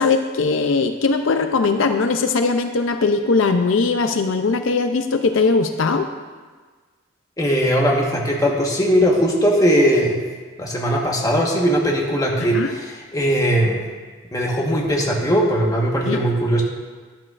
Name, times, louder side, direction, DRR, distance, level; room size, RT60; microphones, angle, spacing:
voice 1, 0.0-6.1 12.5-12.7 16.1-16.2, left 4 dB, 70° left, 7 dB, 0.5 m, -19 dB
voice 2, 7.4-10.2 10.6-13.8 14.3-16.6, equal, 15° left, -2 dB, 1.3 m, -19 dB
13.0 x 10.5 x 2.5 m, 1.4 s
head